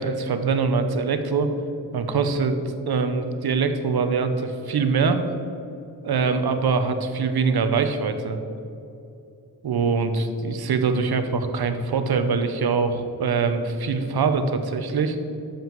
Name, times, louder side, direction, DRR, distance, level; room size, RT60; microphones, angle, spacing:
voice 1, 0.0-1.5 1.9-2.6 2.9-5.2 6.0-8.4 9.6-15.2, right 5 dB, 75° right, 8 dB, 0.9 m, -23 dB
7.1 x 5.8 x 7.5 m, 2.6 s
wide cardioid pair, 100°, 38 cm